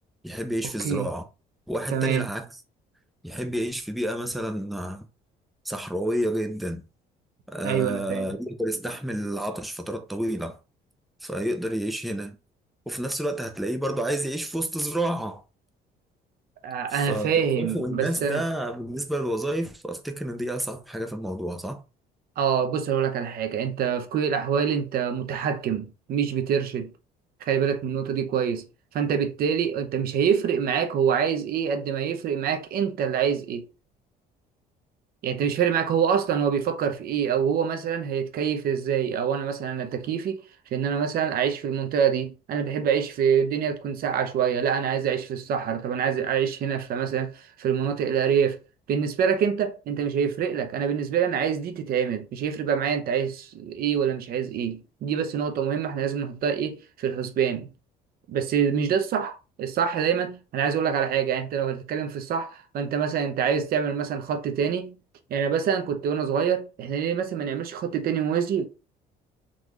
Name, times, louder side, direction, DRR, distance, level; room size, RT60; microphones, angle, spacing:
voice 1, 0.2-1.2 1.7-2.6 3.2-5.0 5.6-6.8 7.5-10.6 11.2-12.4 12.9-15.4 16.9-21.8, right 1 dB, ahead, 0.6 m, -30 dB
voice 2, 1.9-2.3 7.6-8.3 16.6-18.4 22.4-26.9 27.5-28.6 28.9-33.7 35.2-40.4 40.7-48.6 48.9-57.7 58.3-65.0 65.3-68.7, right 7 dB, 65° right, 0.7 m, -26 dB
3.8 x 2.4 x 3.1 m
cardioid pair, 110°, 17 cm